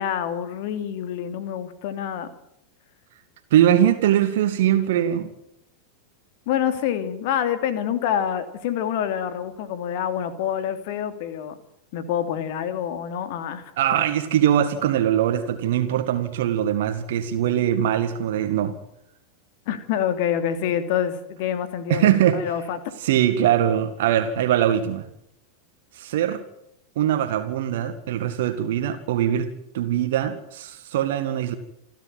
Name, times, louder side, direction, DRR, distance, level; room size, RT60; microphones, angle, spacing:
voice 1, 0.0-2.3 6.5-11.6 11.9-14.0 19.7-22.8, left 9 dB, 50° left, 10 dB, 2.9 m, -27 dB
voice 2, 3.5-5.3 13.8-18.8 21.9-22.4 23.0-25.1 26.0-26.4 27.0-31.6, right 11 dB, 55° right, 8 dB, 2.0 m, -22 dB
28.5 x 13.0 x 9.6 m, 0.78 s
figure-of-eight pair, 90°, 0 cm